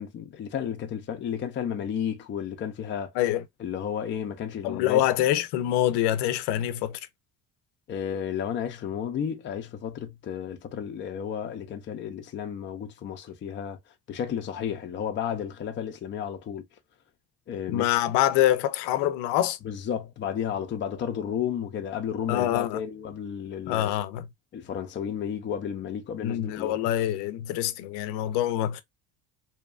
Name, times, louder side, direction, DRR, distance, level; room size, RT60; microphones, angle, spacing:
voice 1, 0.0-3.1 3.6-5.1 7.9-13.8 14.1-16.6 17.5-18.0 19.6-23.9 24.5-26.8, left 8 dB, 30° left, 0.5 m, -32 dB
voice 2, 4.6-7.0 17.7-19.6 22.3-22.8 23.7-24.3 26.2-28.8, left 13 dB, 90° left, 0.6 m, -25 dB
2.8 x 2.3 x 2.3 m
cardioid pair, 155°, 40 cm